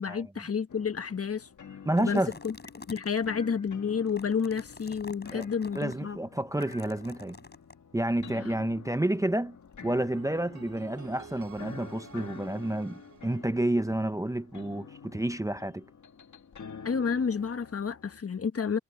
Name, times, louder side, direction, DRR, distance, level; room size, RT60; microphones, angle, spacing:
voice 1, 0.0-1.5 2.0-2.6 2.9-6.2 16.8-18.8, left 6 dB, 55° left, 1.1 m, -30 dB
sound 1, 0.7-18.2, left 6 dB, 85° left, 1.5 m, -48 dB
sound 2, 1.9-3.3 3.9-5.9 6.6-7.7, left 3 dB, 35° left, 5.6 m, -48 dB
voice 2, 1.9-2.3 5.3-5.5 5.7-7.4 7.9-9.6 9.8-15.8, right 1 dB, 10° right, 0.6 m, -30 dB
sound 3, 10.1-14.2, right 6 dB, 75° right, 3.3 m, -51 dB
wide cardioid pair, 120°, 29 cm